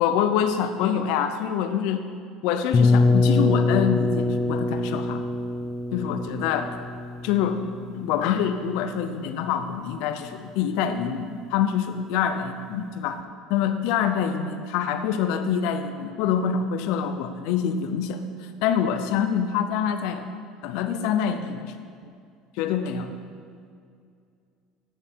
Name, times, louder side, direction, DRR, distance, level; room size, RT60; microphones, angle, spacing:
voice 1, 0.0-2.0 2.4-5.2 5.9-6.7 7.2-7.6 7.9-13.2 13.5-18.2 18.6-20.3 20.6-21.7 22.6-23.1, left 8 dB, 75° left, 9 dB, 0.5 m, -25 dB
sound 1, 2.7-8.5, left 3 dB, 30° left, 0.5 m, -24 dB
9.8 x 5.1 x 4.5 m, 2.3 s
supercardioid pair, 120°, 0 cm